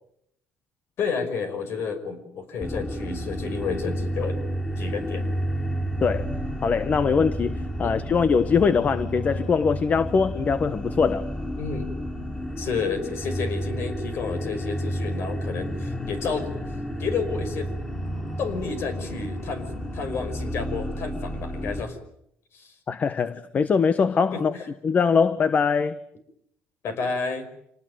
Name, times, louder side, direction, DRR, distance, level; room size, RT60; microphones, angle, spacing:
voice 1, 1.0-4.4 4.8-5.3 7.8-8.1 11.6-11.9 12.6-16.5 17.0-17.7 18.4-22.0 22.5-22.7 24.3-24.6 26.8-27.5, left 5 dB, 55° left, 5.5 m, -31 dB
sound 1, 2.6-21.8, equal, 15° left, 7.5 m, -31 dB
voice 2, 6.6-11.3 22.9-24.5 24.8-26.0, left 5 dB, 35° left, 1.2 m, -22 dB
27.5 x 19.0 x 9.3 m
cardioid pair, 125°, 5 cm